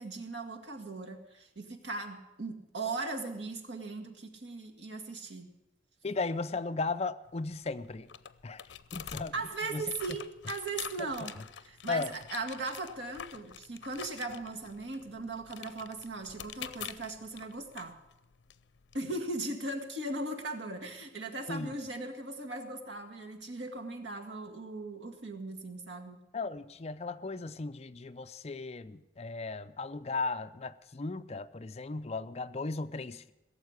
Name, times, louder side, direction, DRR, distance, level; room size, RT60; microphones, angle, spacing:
voice 1, 0.0-5.5 9.3-11.4 11.6-18.0 18.9-26.2, right 2 dB, 90° right, 3 dB, 2.0 m, -38 dB
voice 2, 6.0-8.1 8.4-8.6 8.9-9.3 9.7-9.9 11.0-11.1 11.9-12.2 21.5-21.7 26.3-33.3, left 3 dB, 35° left, 12 dB, 0.5 m, -36 dB
sound 1, 7.2-19.0, left 9 dB, 85° left, 0.6 m, -47 dB
17.0 x 7.4 x 9.6 m, 0.91 s
head